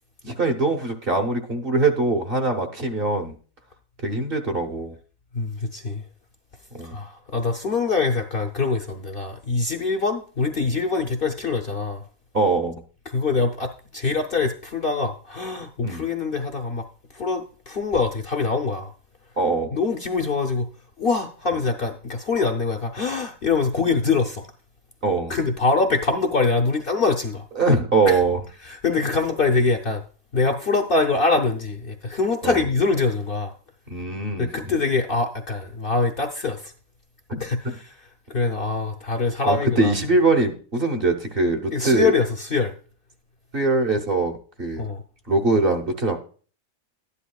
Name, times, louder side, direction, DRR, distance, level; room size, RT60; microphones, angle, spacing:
voice 1, 0.2-3.3 4.0-4.9 6.8-6.9 12.3-12.8 15.8-16.0 19.4-19.8 25.0-25.3 27.6-28.4 32.4-32.6 33.9-34.8 37.3-37.4 39.4-42.1 43.5-44.9 45.3-46.2, right 3 dB, 45° right, 1.2 m, -22 dB
voice 2, 5.3-6.0 6.8-12.0 13.1-16.9 17.1-18.9 19.7-20.7 21.0-24.5 25.3-27.5 28.1-28.2 28.6-30.0 30.3-33.5 34.4-36.7 37.4-39.9 41.7-42.7 44.8-45.0, left 4 dB, 50° left, 0.8 m, -24 dB
12.0 x 10.0 x 2.3 m
omnidirectional pair, 1.4 m